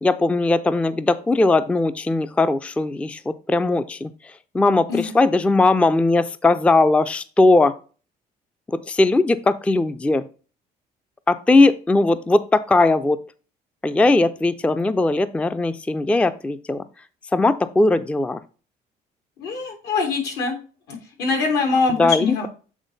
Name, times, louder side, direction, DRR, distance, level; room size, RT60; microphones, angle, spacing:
voice 1, 0.0-7.7 8.7-10.2 11.3-13.2 13.8-16.8 17.3-18.4 22.0-22.4, left 2 dB, 5° left, 13 dB, 0.4 m, -19 dB
voice 2, 19.4-20.5 20.9-22.5, left 4 dB, 80° left, 3 dB, 2.9 m, -23 dB
8.2 x 3.8 x 3.9 m, 0.37 s
cardioid pair, 110°, 17 cm